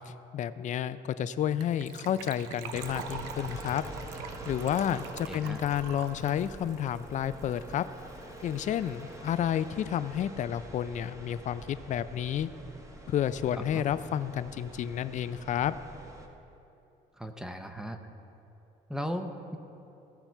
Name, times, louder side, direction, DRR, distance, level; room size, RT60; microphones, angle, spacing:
voice 1, 0.3-3.8 4.5-7.8 8.4-12.5 13.1-15.7, left 10 dB, 45° left, 14 dB, 0.4 m, -30 dB
Gurgling / Trickle dribble / Fill (with liquid), 1.6-7.8 8.1-8.2 8.4-8.6 8.9-9.0, right 8 dB, 90° right, 0.6 m, -44 dB
sound 1, 2.7-16.3, right 1 dB, 20° right, 1.2 m, -45 dB
voice 2, 5.3-5.6 13.5-13.9 17.2-18.0 18.9-19.6, equal, 5° right, 6 dB, 0.6 m, -37 dB
16.5 x 5.8 x 4.5 m, 2.9 s
cardioid pair, 110°, 17 cm